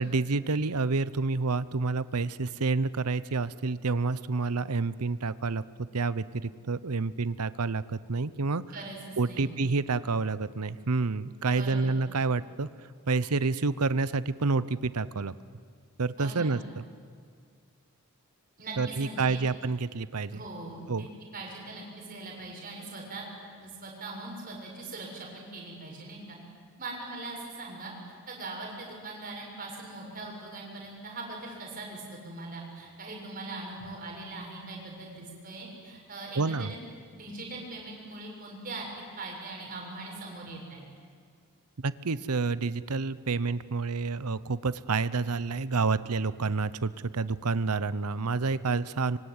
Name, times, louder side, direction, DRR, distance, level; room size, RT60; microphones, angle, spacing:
voice 1, 0.0-8.6 9.2-12.7 13.1-15.3 16.0-16.8 18.8-20.4 20.9-21.1 36.4-36.7 41.8-49.2, right 4 dB, 90° right, 16 dB, 0.8 m, -29 dB
voice 2, 8.7-9.6 11.5-11.9 16.2-16.5 18.6-18.8 19.0-19.4 20.3-21.1 21.3-23.2 23.6-26.4 26.8-27.9 28.3-36.8 37.1-38.9 39.2-40.8, right 2 dB, 40° right, -1 dB, 7.2 m, -41 dB
25.5 x 24.0 x 9.6 m, 2.1 s
head